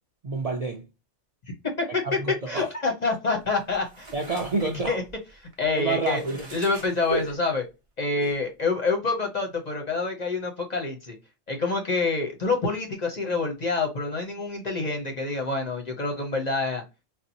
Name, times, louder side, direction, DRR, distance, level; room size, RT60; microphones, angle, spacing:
voice 1, 0.2-0.8 2.0-2.7 4.1-5.0 5.7-6.5 7.1-7.3 8.2-8.3, right 3 dB, 50° right, 0.5 m, -28 dB
voice 2, 1.5-2.2 2.5-4.1 4.6-5.0 5.6-6.2 6.5-7.6 8.0-11.2 11.5-16.8, left 3 dB, 45° left, 0.6 m, -27 dB
sound 1, 3.4-7.6, right 3 dB, 30° right, 0.8 m, -48 dB
4.1 x 2.0 x 2.6 m
omnidirectional pair, 1.3 m